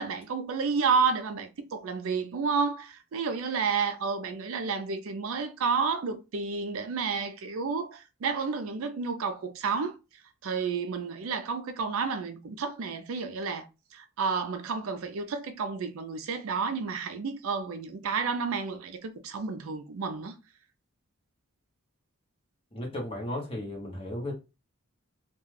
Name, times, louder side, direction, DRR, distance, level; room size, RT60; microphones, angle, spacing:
voice 1, 0.0-10.0 10.4-13.6 13.9-20.3, right 5 dB, 65° right, 0.4 m, -31 dB
voice 2, 22.7-24.3, left 1 dB, 25° left, 0.9 m, -35 dB
2.3 x 2.2 x 3.2 m
head